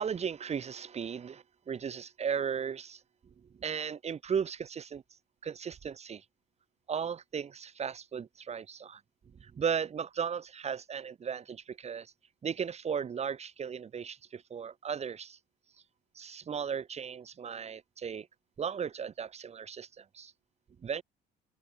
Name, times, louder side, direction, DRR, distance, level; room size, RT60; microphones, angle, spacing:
voice 1, 0.0-3.0 3.6-5.0 5.4-6.2 6.9-9.0 9.4-12.1 12.4-15.4 16.1-18.3 18.6-20.3 20.8-21.0, right 7 dB, 40° right, 3.7 m, -36 dB
open air
cardioid pair, 110°, 17 cm